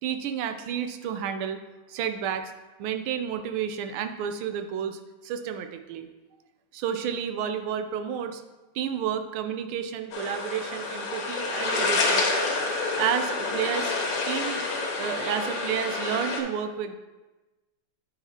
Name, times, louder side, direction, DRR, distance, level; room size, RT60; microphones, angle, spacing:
voice 1, 0.0-1.6 1.9-2.5 2.8-6.1 6.7-8.4 8.7-12.2 13.0-13.9 14.3-14.6 15.0-17.0, right 8 dB, 80° right, 8 dB, 1.4 m, -31 dB
sound 1, 10.1-16.4, left 3 dB, 85° left, 1.9 m, -28 dB
9.3 x 5.0 x 2.7 m, 1.2 s
omnidirectional pair, 2.4 m